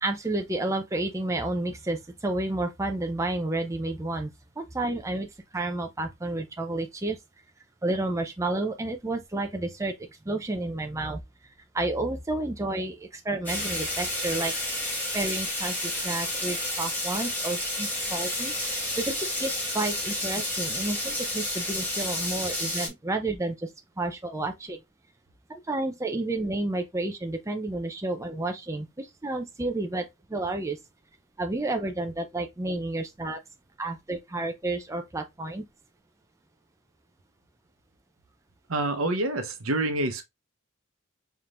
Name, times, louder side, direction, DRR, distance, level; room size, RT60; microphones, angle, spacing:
voice 1, 0.0-4.3 4.6-5.3 5.5-7.2 7.8-9.9 10.3-11.2 11.7-14.5 15.1-18.5 19.0-19.1 19.4-23.7 24.0-24.8 25.5-30.0 30.3-30.8 31.4-33.4 33.8-35.6, right 2 dB, 15° right, 0.5 m, -30 dB
sound 1, 13.5-22.9, left 1 dB, 10° left, 1.4 m, -30 dB
voice 2, 38.7-40.2, right 2 dB, 75° right, 0.8 m, -27 dB
4.3 x 3.6 x 2.5 m
head